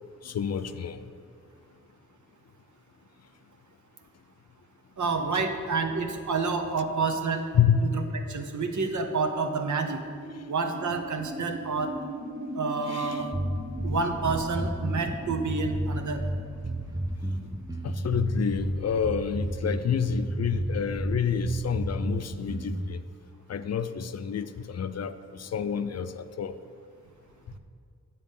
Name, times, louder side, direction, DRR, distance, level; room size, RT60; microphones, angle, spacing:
voice 1, 0.2-1.1 7.5-7.8 12.9-13.3 17.8-23.0 23.5-26.6, left 7 dB, 60° left, 12 dB, 0.5 m, -28 dB
voice 2, 5.0-7.4 7.8-8.0 8.3-10.0 10.5-11.9 12.5-13.3 13.8-16.2, right 4 dB, 80° right, 6 dB, 0.9 m, -29 dB
sound 1, 7.7-18.8, equal, 55° right, 1.8 m, -42 dB
sound 2, 13.3-22.9, right 1 dB, 10° right, 0.6 m, -31 dB
9.7 x 7.0 x 5.4 m, 2.2 s
wide cardioid pair, 110°, 29 cm